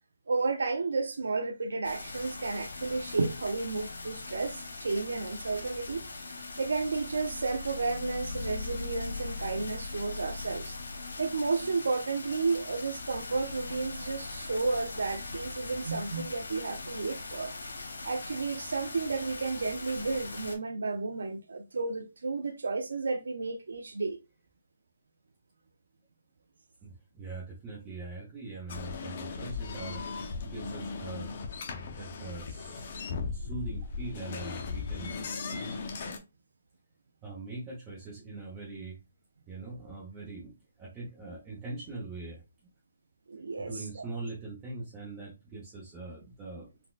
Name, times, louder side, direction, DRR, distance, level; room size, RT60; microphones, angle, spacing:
voice 1, 0.3-6.0 6.6-10.8 11.2-17.5 18.0-24.2 43.3-43.7, right 3 dB, 85° right, 0.4 m, -32 dB
sound 1, 1.8-20.6, left 3 dB, 85° left, 0.8 m, -40 dB
voice 2, 26.8-31.4 31.7-32.8 33.3-35.7 37.2-39.0 39.5-42.4 43.6-46.7, right 3 dB, 15° right, 0.8 m, -42 dB
sound 2, 28.7-36.2, left 4 dB, 45° left, 0.6 m, -37 dB
4.0 x 2.2 x 2.4 m
hypercardioid pair, 160°, 0 cm